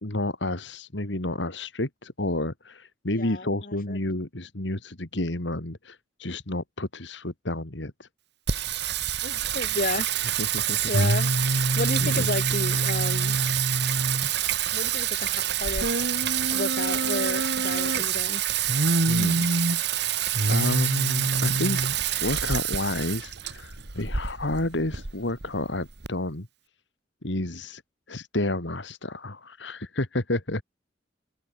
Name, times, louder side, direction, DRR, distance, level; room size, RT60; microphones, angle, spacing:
voice 1, 0.0-8.1 10.4-10.8 11.7-12.3 19.1-19.5 20.5-21.8 22.2-26.5 27.2-27.8 28.1-30.6, left 1 dB, 70° left, 2.5 m, -30 dB
voice 2, 3.1-4.0 9.2-10.1 10.9-11.3 11.7-13.4 14.7-16.0 16.5-18.4, left 2 dB, 50° left, 5.6 m, -32 dB
Singing, 8.5-26.1, right 6 dB, 60° right, 1.9 m, -25 dB
open air
head